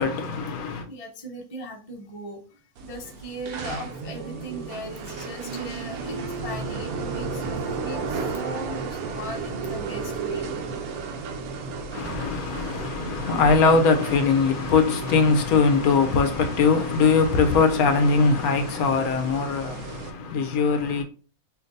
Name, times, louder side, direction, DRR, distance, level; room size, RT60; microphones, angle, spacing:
voice 1, 0.0-0.9 11.9-21.0, left 4 dB, 85° left, 1.1 m, -21 dB
voice 2, 0.9-10.5 17.2-17.3, equal, 35° left, 0.6 m, -38 dB
sound 1, 2.8-20.1, right 4 dB, 85° right, 1.2 m, -34 dB
sound 2, 4.0-14.8 15.1-15.2 16.1-16.2, right 3 dB, 15° right, 1.2 m, -42 dB
5.8 x 2.6 x 2.6 m
omnidirectional pair, 1.5 m